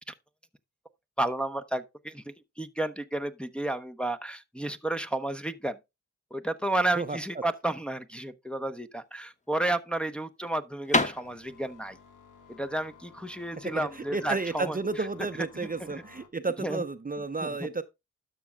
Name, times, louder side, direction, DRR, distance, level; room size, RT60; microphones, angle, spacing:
voice 1, 1.2-2.2 2.6-5.8 6.3-12.0 12.5-15.1 15.8-16.0 16.6-16.8 17.4-17.7, right 1 dB, 5° left, 0.8 m, -32 dB
sound 1, 9.0-14.7, left 2 dB, 25° left, 1.2 m, -32 dB
sound 2, 11.2-16.3, left 7 dB, 85° left, 1.5 m, -54 dB
voice 2, 13.7-17.8, right 3 dB, 30° right, 0.7 m, -32 dB
12.5 x 6.2 x 2.2 m
cardioid pair, 55°, 30 cm